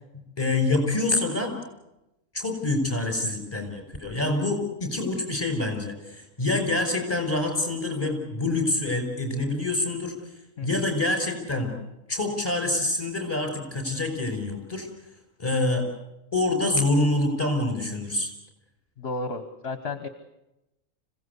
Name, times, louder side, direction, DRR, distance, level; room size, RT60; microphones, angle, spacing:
voice 1, 0.4-1.5 2.3-10.3 10.6-11.8 12.1-14.9 15.4-15.9 16.3-18.3, left 2 dB, 20° left, 5 dB, 5.5 m, -26 dB
voice 2, 19.0-20.1, left 3 dB, 55° left, 9 dB, 1.4 m, -33 dB
26.0 x 17.0 x 8.2 m, 0.92 s
omnidirectional pair, 1.3 m